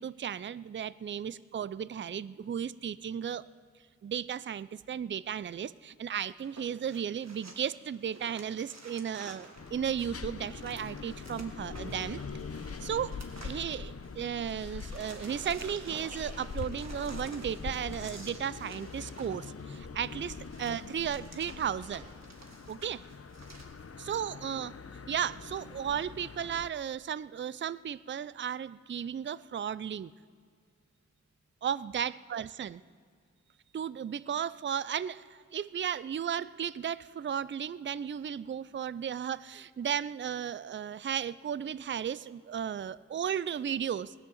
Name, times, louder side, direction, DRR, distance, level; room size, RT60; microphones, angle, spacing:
voice 1, 0.0-3.5 4.0-12.2 12.8-22.1 22.7-23.0 24.0-24.7 25.1-30.1 31.6-32.8 33.7-44.1, right 8 dB, 40° right, 18 dB, 0.4 m, -35 dB
sound 1, 6.4-14.1 14.4-23.7, right 2 dB, 65° right, 1.9 m, -51 dB
sound 2, 9.5-26.7, left 5 dB, 50° left, 0.8 m, -43 dB
19.5 x 10.5 x 7.2 m, 2.1 s
wide cardioid pair, 65°, 29 cm